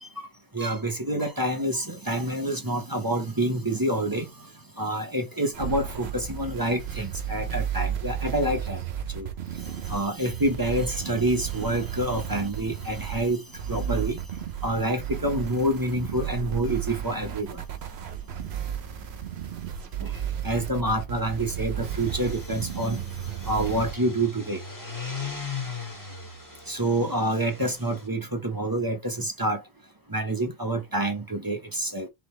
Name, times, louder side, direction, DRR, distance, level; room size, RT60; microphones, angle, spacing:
voice 1, 0.5-4.5 4.8-8.8 9.1-9.3 9.9-13.4 13.7-14.2 14.6-17.6 20.0-20.2 20.4-23.0 23.4-24.6 26.7-29.6 30.1-32.1, right 1 dB, 20° right, 1.0 m, -27 dB
sound 1, 5.5-23.9, right 9 dB, 65° right, 1.0 m, -33 dB
sound 2, 21.8-28.1, left 4 dB, 15° left, 2.1 m, -38 dB
3.9 x 3.9 x 3.3 m
omnidirectional pair, 1.2 m